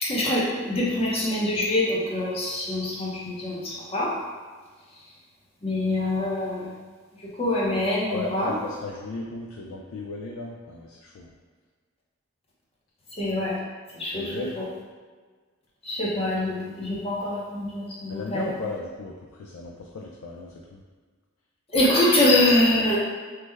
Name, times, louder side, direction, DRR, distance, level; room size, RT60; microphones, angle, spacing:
voice 1, 0.0-4.1 5.6-6.7 7.4-8.6 13.1-13.6 13.9-14.7 15.8-18.5 21.7-23.0, left 1 dB, 30° left, -5 dB, 0.7 m, -24 dB
voice 2, 8.1-11.3 14.1-14.6 18.1-20.8, left 2 dB, 90° left, -2 dB, 0.4 m, -35 dB
3.2 x 2.1 x 3.3 m, 1.5 s
head